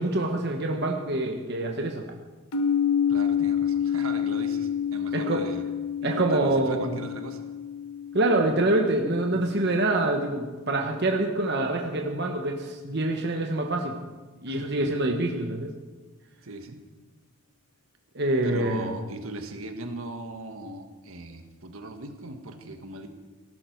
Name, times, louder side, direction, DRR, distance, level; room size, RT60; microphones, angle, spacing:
voice 1, 0.0-2.0 5.1-5.4 6.0-7.0 8.1-14.0 14.4-15.7 18.1-18.9, right 2 dB, 50° right, 2 dB, 1.2 m, -26 dB
sound 1, 2.5-10.3, left 8 dB, 80° left, 1.4 m, -29 dB
voice 2, 3.1-5.6 6.0-7.4 14.5-14.9 16.4-16.8 18.4-23.1, right 2 dB, 70° right, 6 dB, 1.5 m, -39 dB
18.0 x 12.0 x 4.6 m, 1.3 s
head